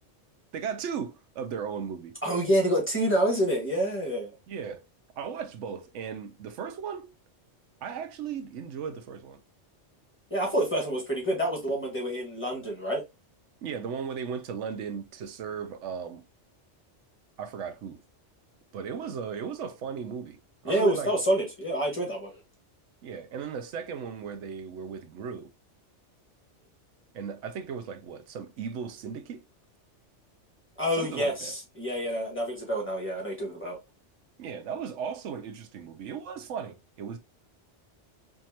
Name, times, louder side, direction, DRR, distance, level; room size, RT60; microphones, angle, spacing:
voice 1, 0.5-2.2 4.5-4.8 5.2-7.1 7.8-9.4 13.6-16.2 17.4-18.0 18.7-21.1 23.0-25.5 27.1-29.4 30.9-31.6 34.4-37.2, right 7 dB, 85° right, 1.0 m, -36 dB
voice 2, 2.2-4.3 10.3-13.0 20.6-22.3 30.8-33.8, right 1 dB, 10° left, 1.6 m, -27 dB
4.5 x 2.7 x 2.8 m
omnidirectional pair, 1.2 m